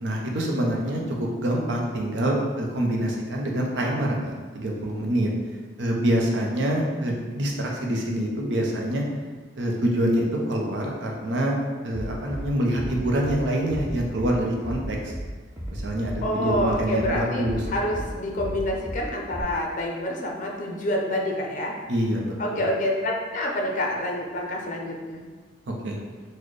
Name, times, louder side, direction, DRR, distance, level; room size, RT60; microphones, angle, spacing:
voice 1, 0.0-5.3 5.8-9.0 9.6-11.6 11.8-15.1 15.7-17.6 18.0-18.1 21.9-22.6 25.8-26.0, right 1 dB, 75° right, 0 dB, 0.6 m, -26 dB
Bass drum, 11.9-12.4 12.7-13.4 13.7-14.3 14.6-15.2 15.6-16.2 16.5-17.1 17.4-18.0 18.4-19.0 19.3-19.4, equal, 15° right, 0.5 m, -34 dB
voice 2, 16.2-21.7 22.4-25.2, left 1 dB, 45° left, 0 dB, 0.5 m, -27 dB
4.1 x 2.1 x 3.1 m, 1.4 s
head